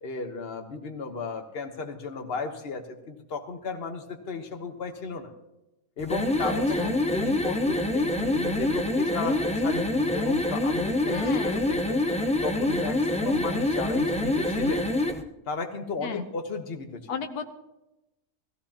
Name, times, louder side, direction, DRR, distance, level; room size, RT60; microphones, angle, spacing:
voice 1, 0.0-5.3 6.0-11.2 11.5-12.0 12.4-14.9 15.5-17.1, left 4 dB, 40° left, 4 dB, 1.4 m, -34 dB
sound 1, 6.0-15.2, left 1 dB, 5° left, 0.7 m, -26 dB
voice 2, 6.4-6.9 11.1-11.6 16.0-16.3 17.1-17.5, left 5 dB, 85° left, 6 dB, 1.5 m, -34 dB
18.0 x 15.0 x 2.9 m, 0.94 s
omnidirectional pair, 1.6 m